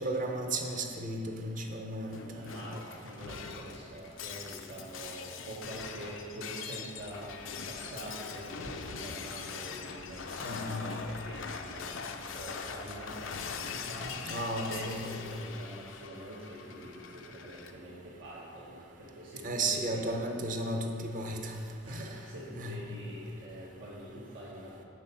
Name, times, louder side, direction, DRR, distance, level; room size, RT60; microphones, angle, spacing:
voice 1, 0.0-2.2 10.4-10.9 14.3-15.1 19.4-21.6 21.9-22.0 22.6-22.8, right 2 dB, 40° right, 3 dB, 0.8 m, -34 dB
Shatter, 2.1-17.7, left 6 dB, 80° left, 0.5 m, -42 dB
voice 2, 2.3-20.1 21.8-24.8, right 1 dB, 85° right, -8 dB, 1.4 m, -45 dB
7.3 x 6.2 x 5.5 m, 2.3 s
head